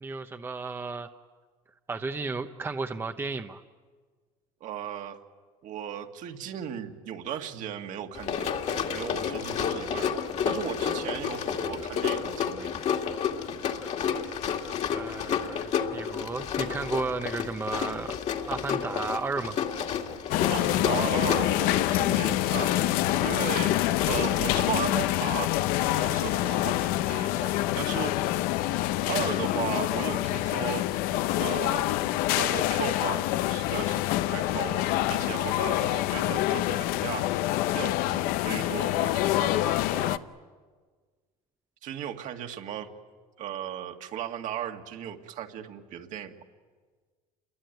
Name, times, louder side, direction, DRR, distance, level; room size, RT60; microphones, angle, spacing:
voice 1, 0.0-1.1 1.9-3.6 14.9-18.2 18.5-19.6, right 3 dB, 15° right, 7 dB, 0.8 m, -33 dB
voice 2, 4.6-5.2 5.6-8.5 8.9-13.0 20.5-22.7 23.2-23.8 24.1-25.6 25.9-28.4 29.1-31.1 31.4-31.9 32.4-37.4 37.7-40.2 41.8-42.9 43.4-46.3, right 10 dB, 55° right, 5 dB, 2.1 m, -36 dB
Run, 8.1-24.8, left 7 dB, 50° left, 2.2 m, -31 dB
sound 1, 20.3-40.2, left 15 dB, 75° left, 0.8 m, -26 dB
28.5 x 22.0 x 9.2 m, 1.5 s
cardioid pair, 130°, 15 cm